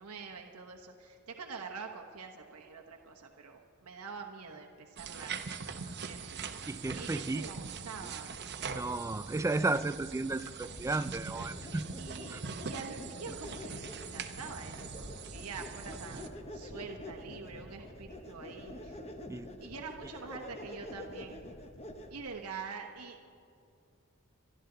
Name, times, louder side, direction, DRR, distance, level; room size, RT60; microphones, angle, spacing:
voice 1, 0.0-6.6 6.9-8.4 12.0-19.0 19.6-21.4 22.1-23.2, right 5 dB, 80° right, 2 dB, 1.1 m, -46 dB
sound 1, 5.0-16.3, right 5 dB, 50° right, 0.9 m, -42 dB
voice 2, 6.7-7.5 8.0-8.1 8.7-11.9 12.3-12.4 19.3-19.5, right 2 dB, 15° right, 14 dB, 0.3 m, -33 dB
sound 2, 10.7-22.3, left 1 dB, 30° left, 1.1 m, -47 dB
27.5 x 12.0 x 3.9 m, 2.5 s
head